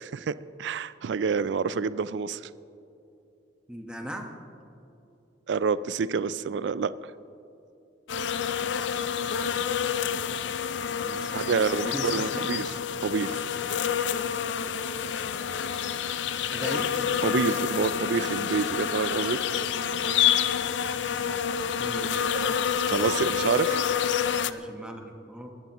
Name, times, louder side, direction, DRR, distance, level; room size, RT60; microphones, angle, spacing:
voice 1, 0.0-2.4 5.5-6.9 11.3-12.6 13.0-13.4 17.2-19.4 22.3-22.5 22.9-23.8, right 5 dB, 75° right, 16 dB, 0.4 m, -28 dB
voice 2, 3.7-4.3 10.9-11.5 11.7-12.3 15.6-15.7 16.5-16.9 21.8-22.1 24.3-25.5, equal, 5° right, 2 dB, 1.3 m, -38 dB
sound 1, 8.1-24.5, left 8 dB, 80° left, 0.5 m, -28 dB
22.0 x 14.0 x 3.0 m, 2.7 s
head